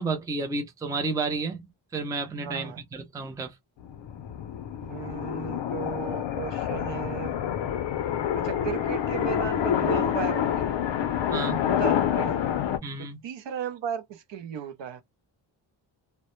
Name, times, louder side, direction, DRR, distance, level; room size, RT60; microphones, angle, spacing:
voice 1, 0.0-1.6 1.9-3.5 11.3-11.6 12.8-13.2, right 3 dB, 10° right, 0.3 m, -31 dB
voice 2, 2.4-2.8 4.8-7.4 8.4-10.8 11.7-12.4 13.0-15.0, right 9 dB, 60° right, 0.5 m, -35 dB
sound 1, 3.8-12.8, left 9 dB, 65° left, 0.5 m, -27 dB
2.1 x 2.0 x 2.9 m
wide cardioid pair, 130°, 49 cm